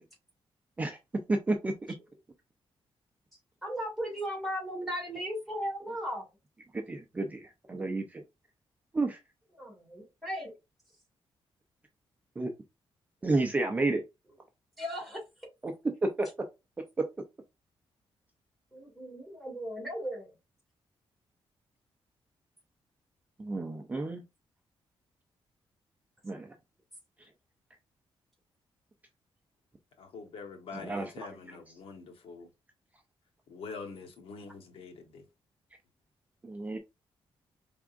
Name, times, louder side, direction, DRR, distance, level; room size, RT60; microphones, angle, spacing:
voice 1, 1.3-1.7 6.9-8.2 8.9-9.2 12.4-12.5 13.2-14.0 15.6-15.7 16.2-16.3 23.4-24.2 26.2-26.5 30.7-31.6 36.4-36.8, right 2 dB, 15° right, 0.5 m, -31 dB
voice 2, 3.6-6.2 9.6-10.5 14.8-15.2 18.7-20.3, equal, ahead, 2.5 m, -36 dB
voice 3, 30.0-32.5 33.5-35.2, left 4 dB, 80° left, 1.1 m, -45 dB
4.8 x 3.5 x 2.4 m
wide cardioid pair, 180°, 10 cm